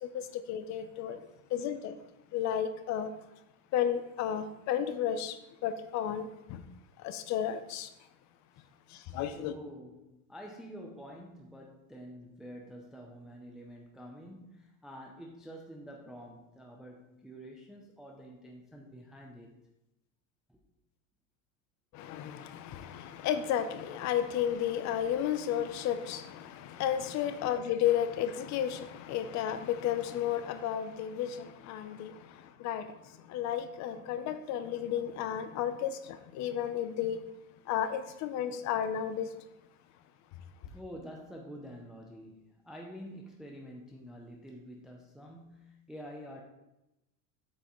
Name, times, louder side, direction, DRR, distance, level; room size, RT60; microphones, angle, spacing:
voice 1, 0.0-1.2 1.5-2.0 2.3-3.1 3.7-6.6 7.0-7.9 8.9-9.5 21.9-37.2 37.7-39.3, left 9 dB, 40° left, 0.6 m, -33 dB
voice 2, 9.3-19.5 20.5-20.6 34.0-34.1 40.7-46.4, equal, ahead, 0.5 m, -48 dB
8.1 x 5.7 x 3.0 m
supercardioid pair, 130°, 43 cm